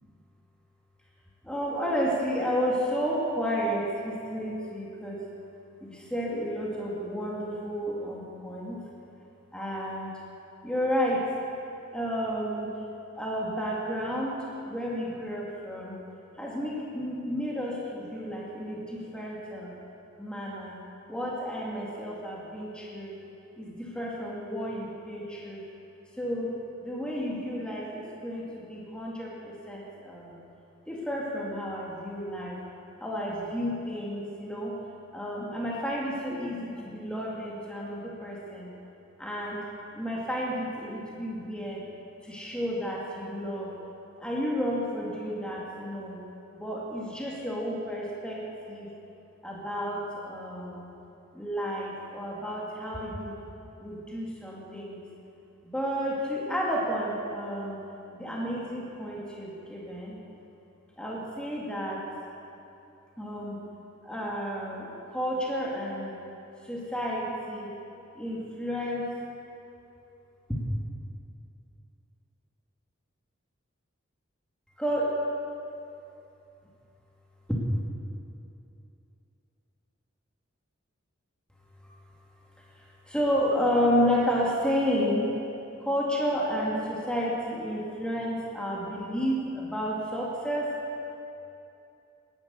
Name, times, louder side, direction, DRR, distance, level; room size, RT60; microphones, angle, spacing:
voice 1, 1.4-5.2 5.8-8.8 9.5-10.1 10.6-11.2 11.9-12.7 13.2-16.0 16.4-19.7 20.2-20.8 21.1-23.2 23.6-25.6 26.2-26.5 26.8-30.4 30.9-32.6 33.0-34.8 35.1-38.7 39.2-39.6 39.9-41.8 42.2-43.7 44.2-46.2 46.5-48.9 49.4-50.9 51.3-53.4 53.8-55.0 55.6-57.8 58.1-60.2 61.0-62.0 63.2-63.6 64.0-66.2 66.6-67.7 68.1-69.1 70.5-70.6 74.8-75.1 77.5-77.6 81.8-81.9 82.7-85.3 85.8-90.7, equal, 5° left, -4 dB, 2.1 m, -31 dB
17.0 x 11.0 x 6.9 m, 2.7 s
head